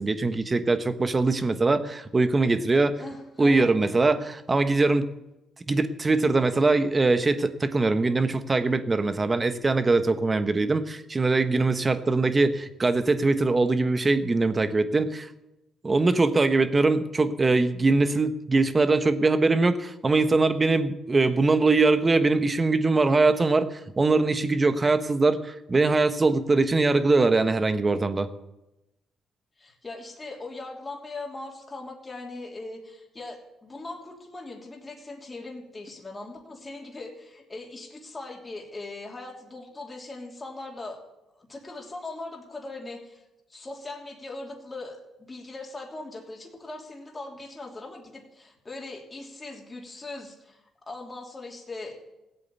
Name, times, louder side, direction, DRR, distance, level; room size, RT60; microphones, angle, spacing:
voice 1, 0.0-2.9 3.4-5.1 5.7-15.3 15.8-28.3, right 3 dB, 25° right, 11 dB, 1.2 m, -22 dB
voice 2, 3.0-3.7 29.6-41.0 41.3-43.2 43.5-52.0, left 2 dB, 25° left, 0 dB, 3.0 m, -40 dB
16.0 x 8.5 x 8.3 m, 0.93 s
cardioid pair, 90°, 0 cm